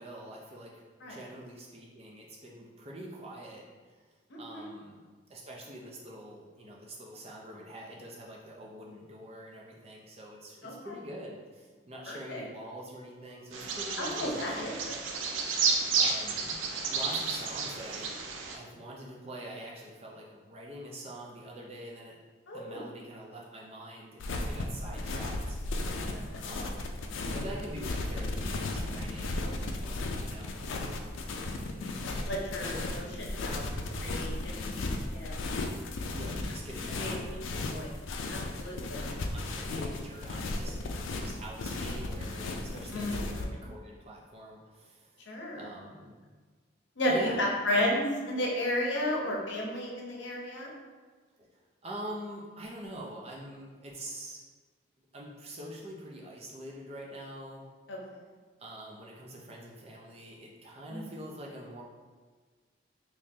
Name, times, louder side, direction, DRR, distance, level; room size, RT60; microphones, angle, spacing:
voice 1, 0.0-4.0 4.4-5.0 5.3-14.8 16.0-16.6 16.9-18.2 18.5-22.2 22.5-25.6 26.4-29.4 30.2-30.5 36.1-37.8 39.3-40.8 41.2-45.3 45.5-46.1 47.1-47.5 51.4-51.5 51.8-54.4 55.1-57.7 58.6-61.8, right 1 dB, 30° right, -2 dB, 0.6 m, -45 dB
voice 2, 4.3-4.7 10.6-10.9 12.1-12.4 14.0-15.0 22.5-22.8 24.9-25.0 26.1-26.4 29.4-29.5 29.8-30.1 32.3-34.3 34.6-34.8 35.1-35.4 36.9-37.9 38.3-39.1 42.9-43.6 45.3-45.6 47.0-50.7 57.9-58.0 60.9-61.0, left 1 dB, 70° left, -2 dB, 0.8 m, -33 dB
Bird vocalization bird call bird song, 13.5-18.6, right 5 dB, 90° right, 0.5 m, -31 dB
sound 1, 24.2-43.4, left 2 dB, 90° left, 0.4 m, -35 dB
3.6 x 3.1 x 2.7 m, 1.4 s
head